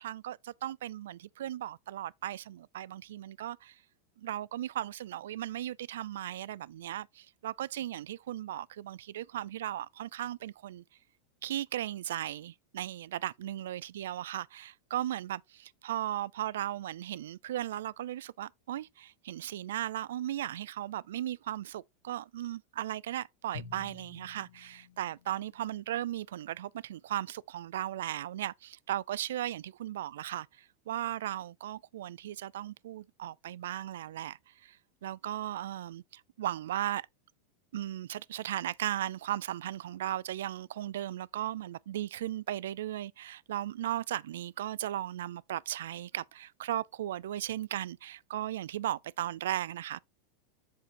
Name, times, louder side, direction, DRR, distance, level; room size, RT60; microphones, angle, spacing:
voice 1, 0.0-3.8 4.2-10.8 11.4-37.1 37.7-50.0, right 12 dB, 90° right, 0.4 m, -37 dB
Drum, 23.5-25.9, left 6 dB, 90° left, 1.7 m, -49 dB
7.6 x 6.5 x 2.9 m
supercardioid pair, 150°, 0 cm